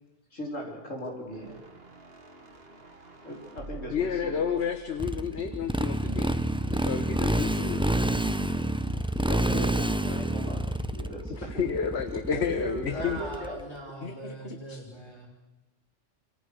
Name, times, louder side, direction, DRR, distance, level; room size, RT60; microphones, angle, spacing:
voice 1, 0.3-1.6 3.2-4.6 9.3-11.6 12.3-13.6, equal, 75° left, 1 dB, 5.0 m, -38 dB
sound 1, 1.3-6.5, right 2 dB, 50° right, 2.1 m, -49 dB
voice 2, 3.9-6.4 6.7-7.9 11.4-13.2 14.0-14.8, left 7 dB, 55° left, 9 dB, 1.6 m, -31 dB
Motorcycle, 5.0-13.6, right 1 dB, 5° right, 0.8 m, -28 dB
voice 3, 12.9-15.3, right 1 dB, 20° left, 0 dB, 6.0 m, -41 dB
27.0 x 25.0 x 6.7 m, 1.0 s
omnidirectional pair, 1.3 m